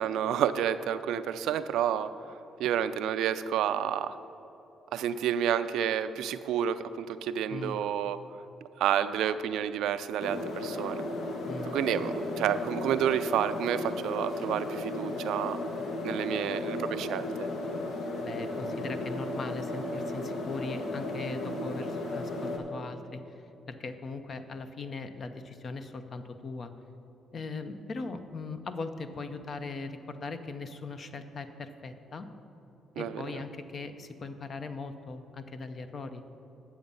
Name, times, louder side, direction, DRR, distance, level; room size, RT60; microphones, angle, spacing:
voice 1, 0.0-2.1 2.6-4.2 4.9-8.2 8.8-11.0 11.7-15.6 16.0-17.3 33.0-33.4, right 9 dB, 85° right, 12 dB, 0.3 m, -29 dB
voice 2, 7.5-7.8 11.5-11.8 18.2-23.2 23.7-26.7 27.3-32.3 32.9-36.2, left 3 dB, 45° left, 9 dB, 0.6 m, -39 dB
sound 1, 10.2-22.6, left 2 dB, 75° left, 1.1 m, -35 dB
8.8 x 7.2 x 5.4 m, 2.9 s
cardioid pair, 90°, 0 cm